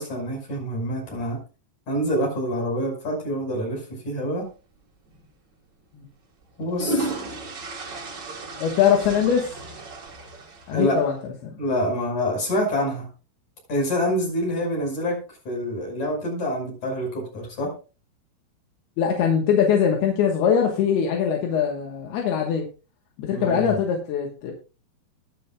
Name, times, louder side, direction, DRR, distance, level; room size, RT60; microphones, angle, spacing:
voice 1, 0.0-1.4 1.9-4.4 6.6-7.1 10.7-11.0 11.6-13.1 13.7-15.2 15.4-17.7 23.3-23.7, equal, 35° left, 0 dB, 6.7 m, -26 dB
sound 1, 5.1-5.3 6.4-11.0, right 1 dB, 90° right, 0.9 m, -33 dB
voice 2, 8.6-9.5 10.7-11.2 11.4-11.5 19.0-22.7 23.2-24.5, left 8 dB, 65° left, 1 dB, 2.9 m, -22 dB
20.5 x 7.6 x 2.4 m, 0.33 s
omnidirectional pair, 5.7 m